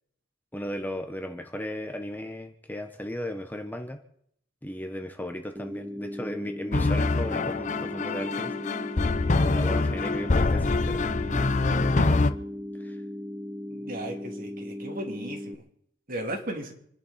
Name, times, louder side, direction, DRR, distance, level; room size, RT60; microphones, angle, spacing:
voice 1, 0.5-4.0 4.6-8.5 9.4-11.1 11.7-12.2 12.8-13.0, left 1 dB, 10° left, 5 dB, 1.1 m, -36 dB
sound 1, 5.5-15.5, left 1 dB, 15° right, 1.3 m, -37 dB
sound 2, 6.7-12.3, left 3 dB, 40° left, 0.7 m, -25 dB
voice 2, 13.7-15.6 16.1-16.7, right 1 dB, 50° right, 2 dB, 3.2 m, -36 dB
28.0 x 11.0 x 4.3 m, 0.69 s
head